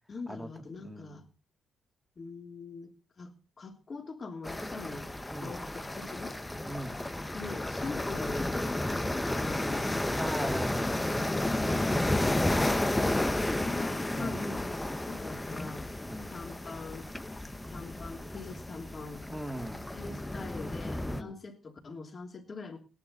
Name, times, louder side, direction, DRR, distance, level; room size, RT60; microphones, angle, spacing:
voice 1, 0.1-1.3 2.2-2.9 3.2-5.1 5.4-6.4 7.3-8.8 9.3-10.9 11.2-12.8 13.4-15.9 16.3-17.1 17.7-19.2 19.9-22.8, left 3 dB, 40° left, 2 dB, 3.1 m, -43 dB
voice 2, 0.8-1.2 5.3-5.5 6.7-7.0 10.2-11.4 14.1-14.5 16.1-16.3 19.3-19.9 21.0-21.3, right 1 dB, 5° right, 5 dB, 2.4 m, -39 dB
sound 1, 4.4-21.2, left 1 dB, 10° left, 1.1 m, -32 dB
18.0 x 11.0 x 4.1 m, 0.33 s
cardioid pair, 90°, 0 cm